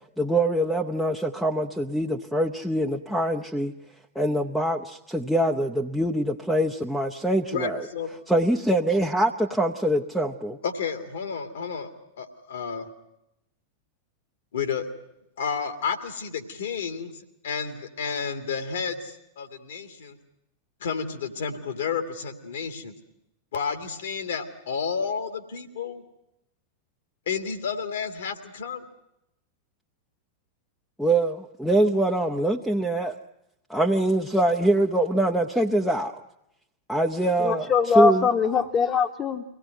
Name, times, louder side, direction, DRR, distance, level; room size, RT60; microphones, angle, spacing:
voice 1, 0.2-3.7 4.1-7.8 8.3-10.6 31.0-33.2 33.7-36.2 36.9-37.7 37.9-38.3, right 1 dB, ahead, -1 dB, 0.9 m, -24 dB
voice 2, 7.5-8.1 10.6-11.9 12.2-12.9 14.5-14.9 15.4-20.2 20.8-23.0 23.5-26.0 27.3-28.9, left 6 dB, 60° left, 8 dB, 2.0 m, -31 dB
voice 3, 37.4-39.4, left 5 dB, 25° left, 0 dB, 1.3 m, -22 dB
24.0 x 17.0 x 9.1 m, 0.86 s
figure-of-eight pair, 90°, 0 cm